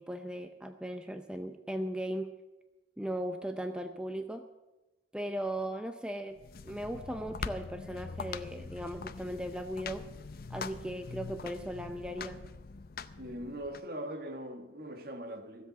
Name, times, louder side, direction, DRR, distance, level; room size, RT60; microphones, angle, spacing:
voice 1, 0.0-2.3 3.0-4.5 5.1-6.4 6.6-10.0 10.5-12.4, right 1 dB, 5° right, 0.6 m, -37 dB
sound 1, 6.3-13.8, left 4 dB, 55° left, 0.6 m, -43 dB
voice 2, 13.2-15.7, right 1 dB, 55° right, 1.5 m, -41 dB
16.0 x 7.8 x 8.1 m
head